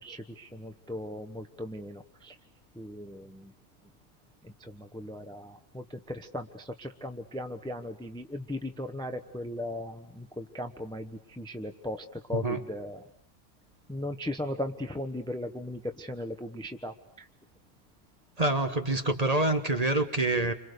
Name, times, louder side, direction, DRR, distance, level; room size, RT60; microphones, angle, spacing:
voice 1, 0.0-2.4 2.7-3.5 4.4-13.0 13.9-17.3, left 1 dB, 5° left, 8 dB, 1.0 m, -38 dB
voice 2, 12.3-12.6 18.4-20.5, right 2 dB, 25° right, 7 dB, 1.4 m, -26 dB
29.5 x 26.0 x 6.8 m, 0.69 s
omnidirectional pair, 1.5 m